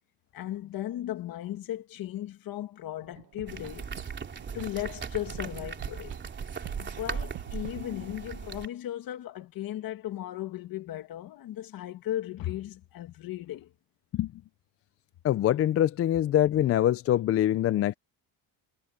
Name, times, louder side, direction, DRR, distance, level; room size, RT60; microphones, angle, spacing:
voice 1, 0.3-3.9 4.5-6.2 6.8-13.7, left 13 dB, 55° left, 2.0 m, -36 dB
sound 1, 3.0-8.2, right 18 dB, 75° right, 1.1 m, -46 dB
sound 2, 3.5-8.7, right 6 dB, 25° right, 3.4 m, -38 dB
voice 2, 15.2-17.9, left 12 dB, 35° left, 0.4 m, -24 dB
cardioid pair, 160°, 42 cm